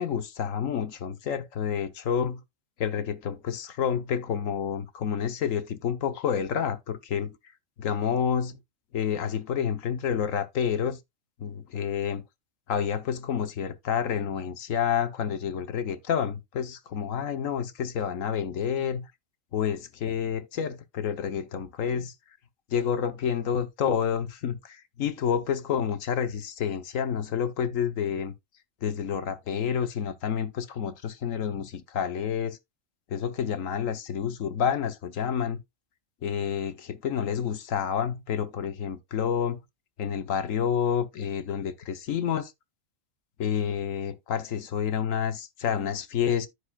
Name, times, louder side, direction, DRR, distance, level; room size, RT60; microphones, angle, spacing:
voice 1, 0.0-2.4 2.8-7.4 7.8-8.6 8.9-11.0 11.4-12.2 12.7-19.1 19.5-22.1 22.7-28.3 28.8-32.6 33.1-35.6 36.2-39.6 40.0-42.5 43.4-46.5, left 8 dB, 75° left, 1.3 m, -29 dB
14.5 x 5.0 x 2.3 m
omnidirectional pair, 1.4 m